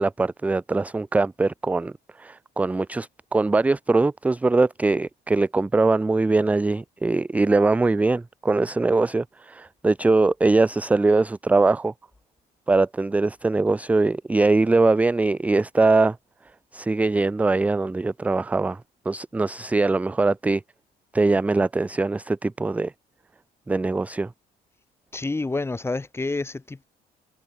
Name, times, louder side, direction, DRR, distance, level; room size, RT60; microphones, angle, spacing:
voice 1, 0.0-1.9 2.2-11.9 12.7-16.2 16.7-18.8 19.1-20.6 21.1-22.9 23.7-24.3, right 3 dB, 10° right, 0.3 m, -22 dB
voice 2, 25.1-26.9, left 3 dB, 15° left, 1.7 m, -28 dB
cardioid pair, 110°, 17 cm